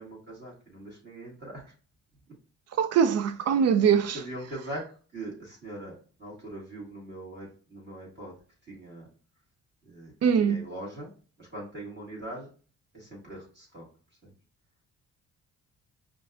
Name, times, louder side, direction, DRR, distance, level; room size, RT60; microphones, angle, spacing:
voice 1, 0.0-1.7 4.1-4.9 5.1-8.3 8.7-9.1 9.8-10.1 10.4-11.1 11.4-12.5 12.9-13.9 14.2-14.3, right 1 dB, 35° right, 1.9 m, -41 dB
voice 2, 2.8-4.2 10.2-10.6, right 7 dB, 55° right, 0.5 m, -22 dB
5.1 x 2.6 x 2.3 m
cardioid pair, 90°, 30 cm